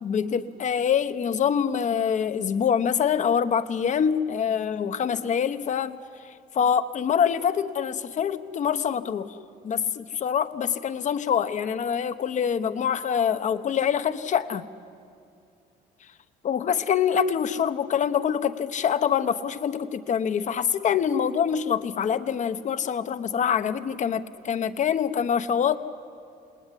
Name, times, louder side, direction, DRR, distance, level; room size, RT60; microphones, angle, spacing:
voice 1, 0.0-6.0 6.5-9.3 9.6-14.6 16.4-25.8, left 8 dB, 45° left, 11 dB, 1.1 m, -25 dB
28.5 x 19.5 x 9.9 m, 2.5 s
cardioid pair, 110°, 17 cm